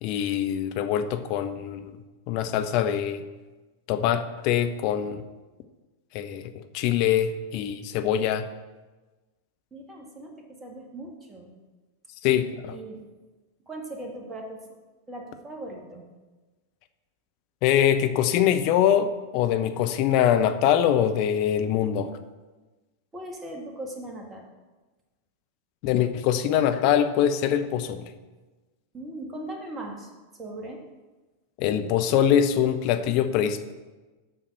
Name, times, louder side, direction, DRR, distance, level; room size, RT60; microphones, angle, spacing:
voice 1, 0.0-1.9 2.3-3.2 3.9-5.2 6.1-8.5 12.2-12.7 17.6-22.1 25.8-28.1 31.6-33.7, left 9 dB, 45° left, 9 dB, 0.7 m, -23 dB
voice 2, 9.7-11.5 12.3-13.1 13.7-14.7 15.1-16.1 23.1-24.5 28.9-30.9, right 1 dB, 15° right, 1 dB, 1.8 m, -39 dB
7.8 x 5.8 x 6.7 m, 1.2 s
figure-of-eight pair, 90°, 0 cm